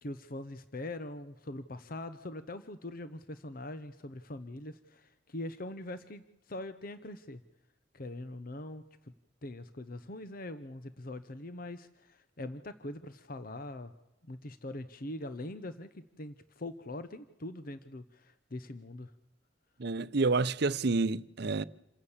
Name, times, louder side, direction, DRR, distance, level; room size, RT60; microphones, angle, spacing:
voice 1, 0.0-7.4 7.9-8.8 9.4-13.9 14.2-19.1, left 1 dB, 50° left, 0.9 m, -42 dB
voice 2, 19.8-21.6, right 3 dB, 65° right, 0.7 m, -29 dB
27.5 x 16.5 x 7.3 m
head